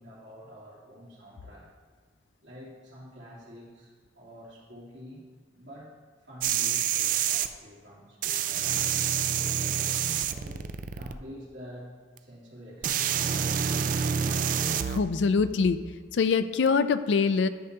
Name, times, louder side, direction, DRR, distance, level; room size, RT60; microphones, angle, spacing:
voice 1, 0.0-1.7 2.4-5.2 5.5-5.9 6.2-8.7 9.3-11.9 12.2-13.6, equal, 75° right, -7 dB, 2.7 m, -47 dB
sound 1, 6.4-7.5 8.2-11.1 12.2-12.3 12.8-15.0 16.7-16.8, right 8 dB, 45° right, 0.3 m, -27 dB
voice 2, 14.9-15.8 16.1-17.5, left 5 dB, 75° left, 12 dB, 0.4 m, -24 dB
12.0 x 6.7 x 2.8 m, 1.5 s
head